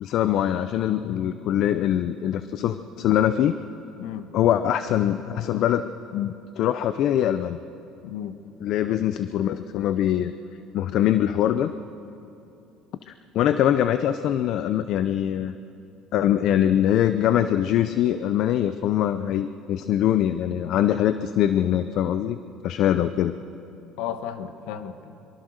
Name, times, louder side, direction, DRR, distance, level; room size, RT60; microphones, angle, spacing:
voice 1, 0.0-3.5 4.3-5.9 6.1-7.6 8.6-10.3 10.7-11.7 13.1-15.6 16.1-22.4 22.6-23.3, left 11 dB, 60° left, 11 dB, 0.7 m, -23 dB
voice 2, 4.0-4.3 8.0-8.3 24.0-25.4, left 9 dB, 80° left, 9 dB, 1.4 m, -34 dB
23.5 x 23.5 x 6.7 m, 2.8 s
cardioid pair, 120°, 0 cm